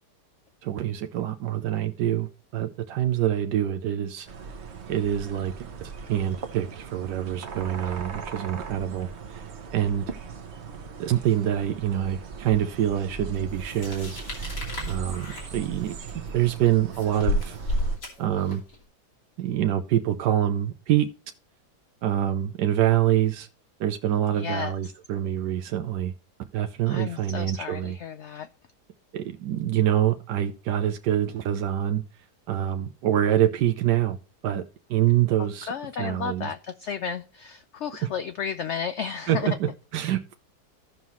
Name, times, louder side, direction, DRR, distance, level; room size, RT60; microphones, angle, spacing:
voice 1, 0.6-4.3 4.9-9.5 9.7-10.1 11.0-14.6 14.9-15.3 15.5-16.0 16.3-17.6 18.2-18.6 19.4-21.1 22.0-23.5 23.8-26.1 26.5-28.0 29.1-32.0 32.5-34.2 34.4-34.6 34.9-35.7 36.0-36.5 38.0-38.1 39.3-40.3, right 11 dB, 85° right, 1.3 m, -25 dB
sound 1, 4.3-18.0, right 5 dB, 45° right, 1.1 m, -39 dB
sound 2, 13.6-18.8, left 1 dB, 85° left, 3.5 m, -31 dB
voice 2, 24.3-24.9 26.9-28.5 35.4-39.6, left 7 dB, 65° left, 0.7 m, -33 dB
15.5 x 5.6 x 3.0 m
omnidirectional pair, 1.8 m